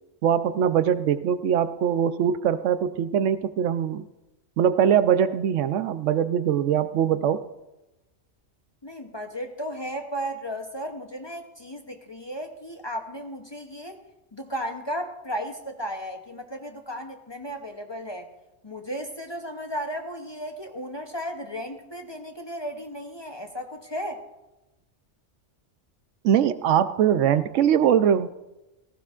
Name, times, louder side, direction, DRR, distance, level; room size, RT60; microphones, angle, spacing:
voice 1, 0.2-4.0 4.6-7.4 26.2-28.3, right 9 dB, 85° right, 13 dB, 0.9 m, -22 dB
voice 2, 8.8-14.0 14.3-18.3 18.6-24.2, equal, 25° left, 4 dB, 0.6 m, -34 dB
17.5 x 15.0 x 2.4 m, 1.0 s
omnidirectional pair, 1.2 m